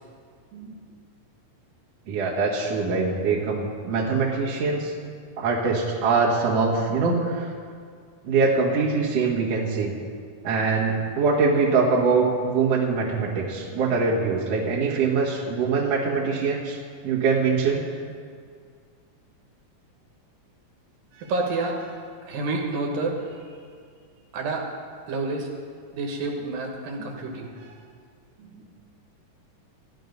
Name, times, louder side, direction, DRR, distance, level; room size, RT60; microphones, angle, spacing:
voice 1, 2.1-4.9 5.4-7.5 8.2-9.9 10.4-16.8 17.0-17.8, right 4 dB, 50° right, -3 dB, 2.6 m, -23 dB
voice 2, 21.1-23.3 24.3-24.7 25.1-25.5 25.9-27.7, right 3 dB, 85° right, 0 dB, 3.1 m, -29 dB
13.5 x 11.5 x 5.3 m, 2.1 s
omnidirectional pair, 4.0 m